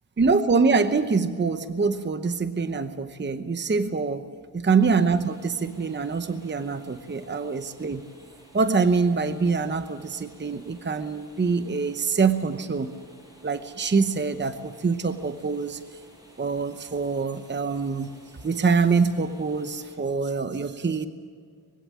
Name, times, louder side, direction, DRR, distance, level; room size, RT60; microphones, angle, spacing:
voice 1, 0.2-4.3 4.5-8.0 8.5-12.9 13.4-15.8 16.4-18.1 18.4-21.1, right 4 dB, 30° right, 10 dB, 0.8 m, -24 dB
sound 1, 4.8-20.0, equal, 10° right, 7.7 m, -54 dB
21.5 x 16.5 x 7.5 m, 2.1 s
wide cardioid pair, 125°, 38 cm